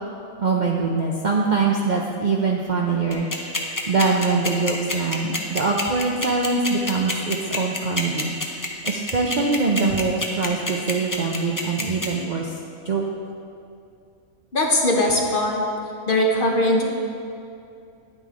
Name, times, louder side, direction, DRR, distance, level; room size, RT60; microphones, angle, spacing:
voice 1, 0.4-3.3 3.9-8.3 8.8-12.5 12.8-13.0, right 4 dB, 45° right, -1 dB, 0.6 m, -23 dB
sound 1, 3.1-12.1, left 2 dB, 20° left, 0.7 m, -26 dB
voice 2, 14.5-15.6 16.1-16.8, left 1 dB, 40° left, 0 dB, 1.1 m, -20 dB
10.0 x 9.1 x 3.7 m, 2.5 s
omnidirectional pair, 1.5 m